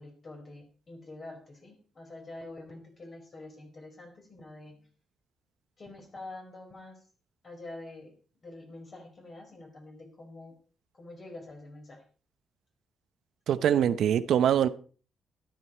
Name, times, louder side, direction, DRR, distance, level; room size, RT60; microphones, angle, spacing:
voice 1, 0.0-4.9 5.8-7.0 7.4-8.1 8.4-10.5 10.9-12.0, left 2 dB, 35° left, 4.8 m, -46 dB
voice 2, 13.5-14.7, right 9 dB, 70° right, 0.7 m, -23 dB
13.0 x 12.0 x 4.4 m
cardioid pair, 115°, 0 cm